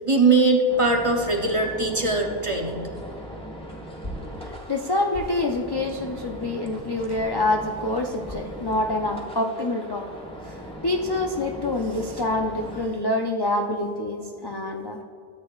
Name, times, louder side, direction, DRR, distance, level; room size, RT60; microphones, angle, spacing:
voice 1, 0.0-2.9, right 3 dB, 35° right, 2 dB, 0.7 m, -21 dB
sound 1, 0.7-12.8, equal, 5° left, 1.1 m, -39 dB
sound 2, 4.0-7.9 8.2-8.5 8.8-9.4 9.7-10.2, equal, 55° left, 2.3 m, -40 dB
voice 2, 4.4-10.1 10.5-10.6 10.8-15.0, left 2 dB, 35° left, 2 dB, 0.4 m, -26 dB
13.5 x 8.5 x 2.4 m, 2.4 s
omnidirectional pair, 1.1 m